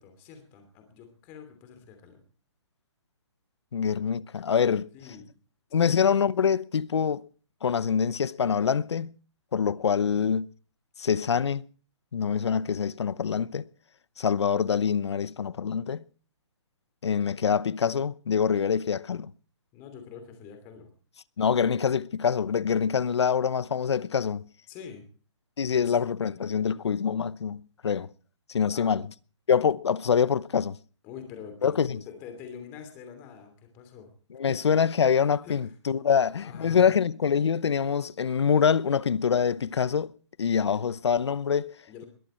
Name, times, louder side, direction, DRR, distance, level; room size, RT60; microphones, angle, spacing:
voice 1, 0.0-2.2 4.9-5.2 9.5-9.9 19.7-20.9 24.7-25.0 25.7-25.9 28.7-28.9 31.0-34.1 34.5-34.6 35.4-35.7 36.1-36.9 40.6-40.8 41.9-42.1, left 7 dB, 15° left, 2.8 m, -45 dB
voice 2, 3.7-4.9 5.7-7.3 7.6-9.1 9.5-10.5 11.0-11.6 12.1-13.7 14.2-16.0 17.0-19.3 21.4-24.5 25.6-28.1 28.5-29.0 29.5-30.8 31.6-32.0 34.3-40.1 40.4-41.7, left 7 dB, 65° left, 0.8 m, -25 dB
21.5 x 14.0 x 4.4 m
hypercardioid pair, 175°, 15 cm